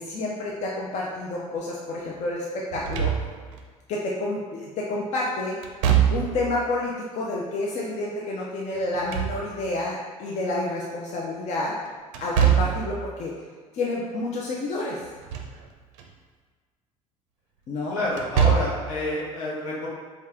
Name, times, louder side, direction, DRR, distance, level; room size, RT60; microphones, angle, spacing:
voice 1, 0.0-3.1 3.9-5.6 6.1-11.8 12.2-13.3 13.7-15.0 17.7-18.0, left 2 dB, 40° left, -3 dB, 0.6 m, -29 dB
Slam / Thump thud, 2.7-3.6 5.6-6.5 8.8-9.8 12.1-12.9 15.0-15.6 16.0-16.1 18.1-18.9, right 8 dB, 60° right, 0.5 m, -23 dB
voice 2, 17.9-19.9, left 1 dB, 65° left, -5 dB, 1.1 m, -28 dB
4.1 x 2.5 x 3.5 m, 1.5 s
figure-of-eight pair, 60°, 19 cm